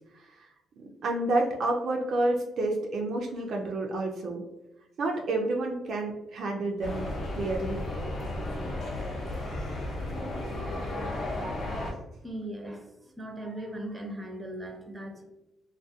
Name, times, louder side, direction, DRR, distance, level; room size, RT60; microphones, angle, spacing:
voice 1, 1.0-4.4 5.0-7.9, right 2 dB, 65° right, 1 dB, 0.4 m, -29 dB
sound 1, 6.8-11.9, left 1 dB, 60° left, 0.7 m, -34 dB
voice 2, 12.2-12.9 13.2-15.2, right 1 dB, 15° right, 2 dB, 0.6 m, -38 dB
2.3 x 2.1 x 2.6 m, 0.94 s
cardioid pair, 90°, 0 cm